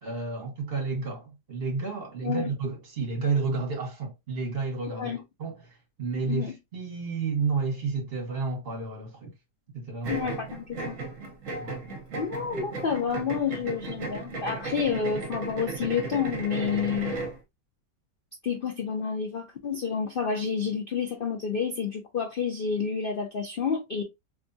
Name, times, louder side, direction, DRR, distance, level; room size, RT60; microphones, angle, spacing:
voice 1, 0.0-5.1 5.4-9.3 9.7-10.3 11.6-11.8, right 4 dB, 35° right, 1.4 m, -31 dB
voice 2, 4.9-5.2 6.3-6.5 10.1-11.0 12.2-17.2 18.4-24.0, left 6 dB, 85° left, 0.4 m, -29 dB
sound 1, 10.0-17.4, right 3 dB, 55° right, 1.1 m, -35 dB
3.5 x 3.0 x 2.6 m
omnidirectional pair, 1.8 m